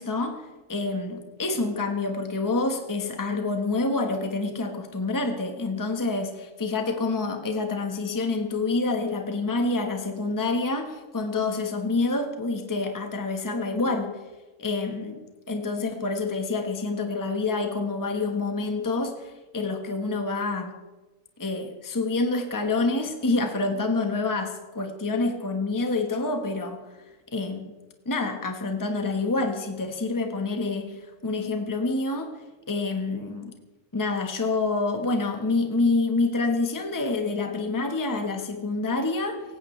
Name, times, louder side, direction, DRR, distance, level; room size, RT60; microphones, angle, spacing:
voice 1, 0.0-14.1 14.6-20.7 21.4-26.8 27.3-27.7 28.0-32.3 32.7-33.5 33.9-39.4, left 3 dB, 15° left, 5 dB, 1.2 m, -27 dB
18.5 x 16.0 x 3.2 m, 1.2 s
omnidirectional pair, 1.5 m